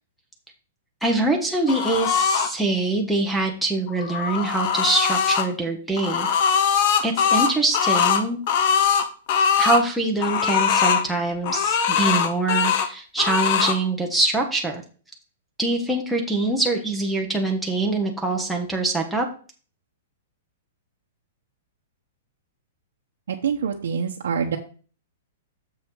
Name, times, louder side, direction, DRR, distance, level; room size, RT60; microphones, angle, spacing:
voice 1, 1.0-6.3 7.0-8.4 9.6-14.8 15.6-19.3, right 2 dB, ahead, -1 dB, 0.7 m, -24 dB
sound 1, 1.7-2.5 3.9-5.5 6.0-9.8 10.2-11.0 11.4-12.9 13.2-13.8, left 7 dB, 35° left, 0.8 m, -21 dB
voice 2, 23.3-24.6, right 6 dB, 80° right, 0 dB, 1.0 m, -25 dB
6.9 x 5.5 x 4.6 m, 0.39 s
hypercardioid pair, 175°, 0 cm